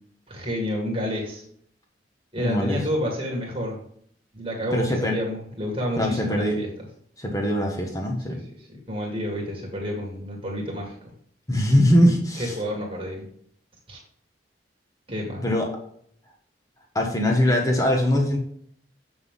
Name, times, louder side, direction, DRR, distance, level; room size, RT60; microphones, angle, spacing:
voice 1, 0.3-1.4 2.3-3.8 4.3-6.7 8.3-11.0 12.4-13.3 13.9-14.0 15.1-15.5, equal, 30° right, -1 dB, 2.0 m, -29 dB
voice 2, 2.4-2.8 4.7-5.2 6.0-6.6 7.2-8.4 11.5-12.5 15.4-15.7 16.9-18.4, equal, 20° left, 1 dB, 1.3 m, -21 dB
7.9 x 6.0 x 3.7 m, 0.63 s
head